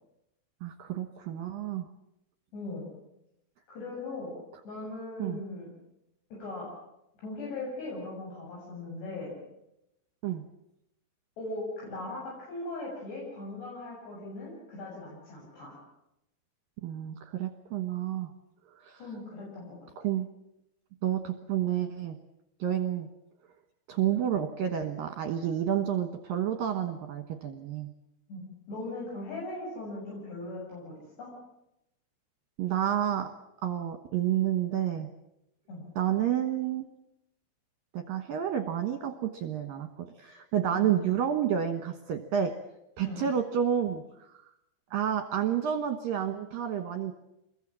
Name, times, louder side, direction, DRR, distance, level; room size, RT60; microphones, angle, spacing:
voice 1, 0.6-1.9 5.2-5.4 10.2-10.4 16.8-18.3 18.8-19.0 20.0-20.3 21.0-22.2 22.6-23.1 23.9-27.9 32.6-33.3 33.6-35.1 36.0-36.8 37.9-42.5 43.0-44.0 44.9-47.1, right 10 dB, 65° right, 7 dB, 2.5 m, -30 dB
voice 2, 2.5-2.9 3.7-4.3 4.6-5.7 6.3-6.7 7.2-9.4 11.4-15.8 19.0-19.8 28.3-28.4 28.7-31.3 35.7-35.8 40.7-40.9 43.0-43.2, left 2 dB, 60° left, -4 dB, 9.4 m, -39 dB
27.5 x 22.0 x 7.5 m, 0.84 s
omnidirectional pair, 5.5 m